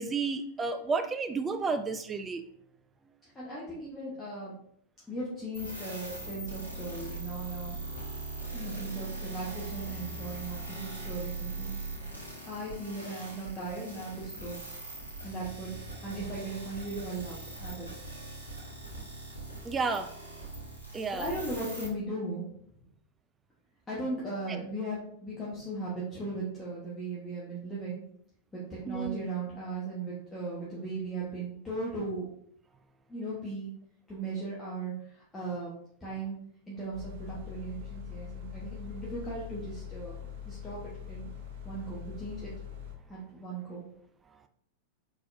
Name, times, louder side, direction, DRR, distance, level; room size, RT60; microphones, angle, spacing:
voice 1, 0.0-2.4 19.6-20.1 20.9-21.3 28.9-29.3, right 4 dB, 20° right, 8 dB, 0.3 m, -31 dB
voice 2, 3.3-4.5 5.1-7.8 8.5-11.8 12.5-14.6 15.2-15.7 16.0-17.9 21.1-22.4 23.9-28.0 28.5-32.2 33.1-33.7 34.1-35.7 36.0-36.4 36.7-40.8 41.1-41.3 41.6-42.5 43.1-43.8, right 2 dB, 15° left, -8 dB, 1.2 m, -37 dB
sound 1, 5.5-21.9, right 2 dB, 85° left, 1.0 m, -41 dB
sound 2, 36.9-42.9, left 9 dB, 50° right, 0.7 m, -42 dB
4.1 x 3.9 x 2.6 m, 0.66 s
figure-of-eight pair, 90°, 0 cm